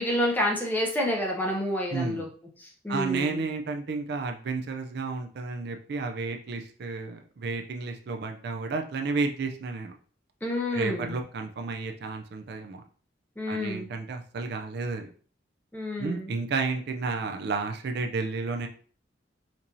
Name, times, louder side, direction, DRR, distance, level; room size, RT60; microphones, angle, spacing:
voice 1, 0.0-2.3 2.6-3.4 10.4-11.2 13.4-13.9 15.7-16.3, left 1 dB, 10° left, -1 dB, 0.8 m, -29 dB
voice 2, 1.9-2.3 2.9-9.9 10.7-12.8 13.5-15.1 16.0-18.7, right 4 dB, 60° right, 5 dB, 0.4 m, -32 dB
4.4 x 2.6 x 2.6 m, 0.43 s
head